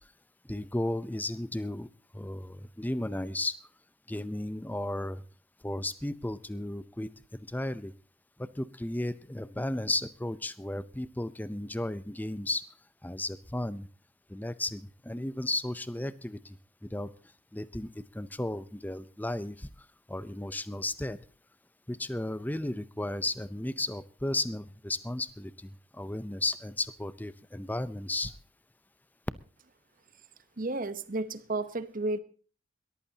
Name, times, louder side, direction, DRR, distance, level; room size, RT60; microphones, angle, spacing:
voice 1, 0.5-1.9 2.1-3.6 4.1-5.2 5.6-7.1 7.5-7.9 8.4-12.7 13.0-13.9 14.3-16.6 16.8-17.1 17.5-17.9 18.1-19.7 20.1-21.2 21.9-25.5 25.9-28.3, left 1 dB, 10° left, 15 dB, 0.6 m, -34 dB
voice 2, 30.6-32.2, right 2 dB, 40° right, 13 dB, 1.0 m, -32 dB
21.5 x 14.5 x 2.8 m, 0.38 s
head